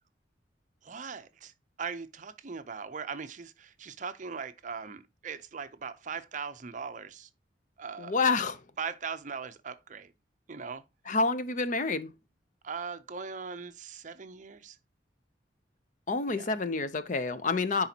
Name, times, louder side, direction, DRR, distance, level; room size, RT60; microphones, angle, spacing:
voice 1, 0.8-1.5 1.8-7.3 7.8-8.1 8.8-10.1 10.5-10.8 12.6-14.8 16.3-16.5, right 5 dB, 45° right, 0.6 m, -39 dB
voice 2, 8.0-8.6 11.1-12.1 16.1-17.9, left 4 dB, 45° left, 0.6 m, -28 dB
10.0 x 4.0 x 2.8 m
head